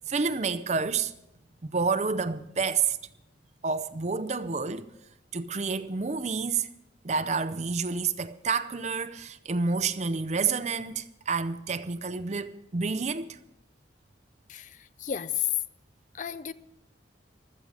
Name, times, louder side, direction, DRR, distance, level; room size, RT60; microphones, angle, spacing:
voice 1, 0.1-1.1 1.6-3.0 3.6-4.9 5.3-6.7 7.0-13.4, right 5 dB, 35° right, 0.6 m, -29 dB
voice 2, 14.5-15.5 16.1-16.5, left 10 dB, 40° left, 0.4 m, -32 dB
15.5 x 13.0 x 4.9 m
head